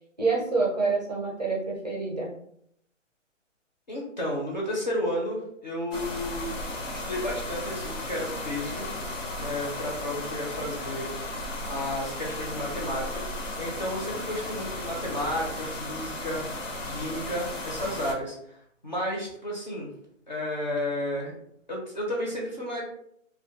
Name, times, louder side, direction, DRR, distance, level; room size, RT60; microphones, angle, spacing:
voice 1, 0.2-2.3, right 4 dB, 35° right, -4 dB, 0.5 m, -27 dB
voice 2, 3.9-6.6 6.9-8.9 9.4-11.1 11.7-13.2 13.6-16.5 16.9-18.4 18.8-19.9 20.3-21.3 21.7-22.8, left 1 dB, 35° left, -3 dB, 0.5 m, -32 dB
sound 1, 5.9-18.1, left 1 dB, 70° left, 0.8 m, -35 dB
2.2 x 2.1 x 2.7 m, 0.71 s
hypercardioid pair, 170°, 38 cm